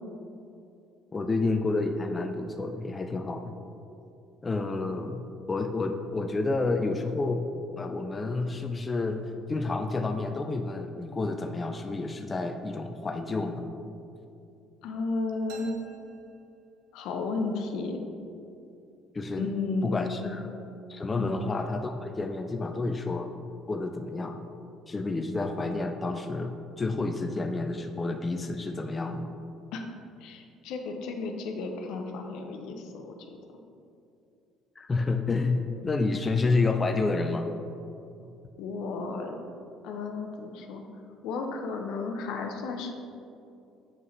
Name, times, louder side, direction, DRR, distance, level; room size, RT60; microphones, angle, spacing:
voice 1, 1.1-3.6 4.4-7.5 7.8-9.2 9.5-13.7 19.1-19.5 19.8-20.6 20.9-23.3 23.7-24.5 24.9-29.3 34.8-37.5, left 3 dB, 30° left, 5 dB, 0.4 m, -29 dB
voice 2, 14.8-15.8 16.9-18.1 19.4-20.4 21.2-21.4 29.7-29.8 30.2-33.4 38.6-39.4 39.8-40.8 41.2-42.9, left 3 dB, 75° left, 4 dB, 0.7 m, -33 dB
sound 1, 15.5-17.2, right 4 dB, 80° right, 0.8 m, -51 dB
7.2 x 5.5 x 3.2 m, 2.6 s
hypercardioid pair, 70°, 0 cm